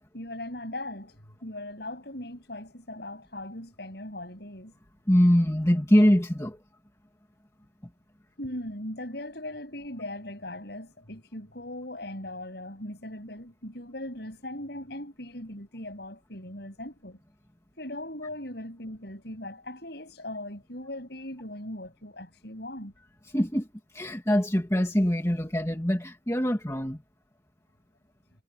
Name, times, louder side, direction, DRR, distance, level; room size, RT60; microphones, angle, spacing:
voice 1, 0.1-4.7 8.4-17.2 17.8-22.9, left 1 dB, 60° left, 7.9 m, -39 dB
voice 2, 5.1-6.6 23.3-23.7 23.9-27.0, equal, 15° left, 2.2 m, -23 dB
head